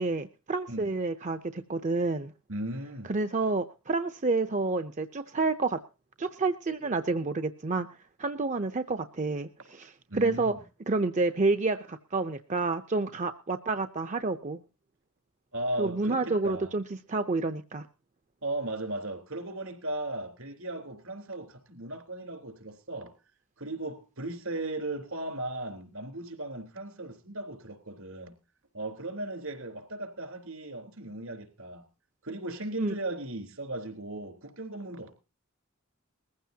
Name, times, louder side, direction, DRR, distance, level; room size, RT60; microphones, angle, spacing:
voice 1, 0.0-2.3 3.1-5.8 6.2-7.9 8.2-10.5 10.9-14.6 15.8-16.8 17.1-17.9 32.8-32.9, right 3 dB, 35° right, 0.7 m, -29 dB
voice 2, 2.5-3.1 10.1-10.6 15.5-16.8 18.4-23.1 23.6-28.3 28.7-31.9 32.2-35.1, right 1 dB, 75° right, 3.8 m, -37 dB
20.5 x 15.0 x 2.8 m
head